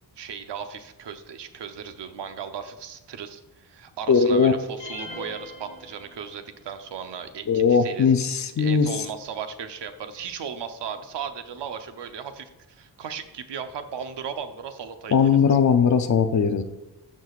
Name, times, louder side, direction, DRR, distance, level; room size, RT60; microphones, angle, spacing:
voice 1, 0.2-8.1 8.6-15.3, right 7 dB, 85° right, 8 dB, 0.8 m, -36 dB
voice 2, 4.1-4.5 7.5-8.9 15.1-16.6, left 6 dB, 45° left, 9 dB, 0.5 m, -19 dB
sound 1, 4.8-6.6, left 1 dB, 85° left, 1.7 m, -41 dB
13.0 x 6.2 x 2.4 m, 1.0 s
wide cardioid pair, 180°, 41 cm